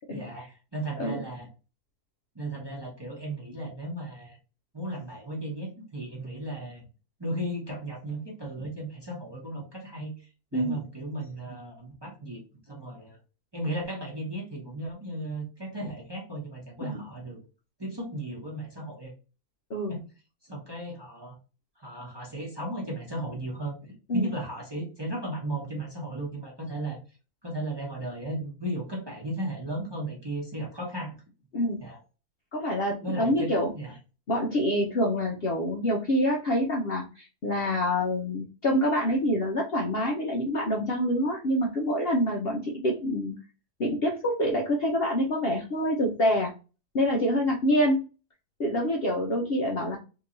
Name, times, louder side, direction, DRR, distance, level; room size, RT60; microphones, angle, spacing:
voice 1, 0.1-1.5 2.3-4.4 4.7-6.8 7.2-10.1 10.5-12.4 12.7-13.2 13.5-17.4 17.8-19.1 19.9-20.0 20.4-21.3 21.8-27.0 27.4-31.1 31.8-32.0 33.0-33.9, right 1 dB, 20° right, -4 dB, 0.9 m, -35 dB
voice 2, 32.5-33.7 34.3-43.3 43.8-46.5 46.9-48.0 48.6-50.0, equal, 55° left, -1 dB, 0.7 m, -26 dB
2.9 x 2.8 x 3.8 m, 0.33 s
omnidirectional pair, 1.6 m